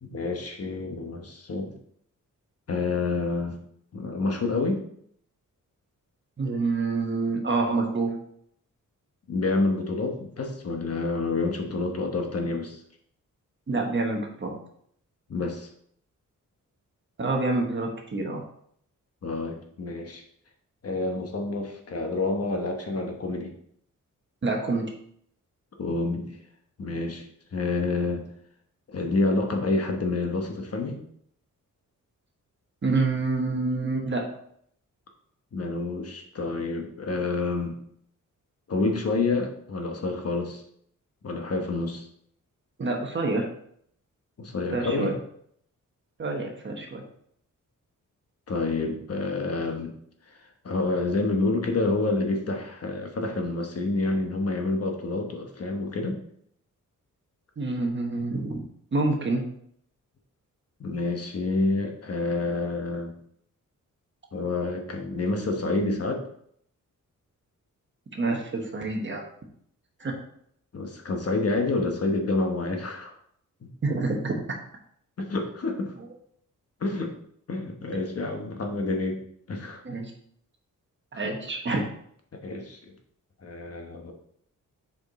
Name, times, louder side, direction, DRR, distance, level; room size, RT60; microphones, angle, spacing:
voice 1, 0.0-1.7 2.7-3.6 3.9-4.8 9.3-12.8 15.3-15.7 19.2-20.2 20.8-23.5 25.8-26.4 26.8-27.3 27.5-28.3 28.9-31.0 35.5-37.8 38.7-40.6 41.2-42.1 44.4-45.2 48.5-49.9 50.3-56.2 60.8-63.1 64.3-66.2 70.7-73.1 73.6-73.7 75.2-75.9 76.8-77.1 77.5-79.2 79.5-79.8 82.3-82.9 83.4-84.1, left 3 dB, 45° left, 3 dB, 1.1 m, -28 dB
voice 2, 6.4-8.2 13.7-14.5 17.2-18.4 24.4-24.9 32.8-34.3 42.8-43.5 44.7-45.1 46.2-47.0 57.6-58.6 58.9-59.4 68.1-69.2 70.0-70.1 73.8-74.3 79.8-80.1 81.1-81.8, right 3 dB, 35° right, 1 dB, 1.3 m, -27 dB
7.3 x 4.9 x 4.1 m, 0.66 s
wide cardioid pair, 175°, 32 cm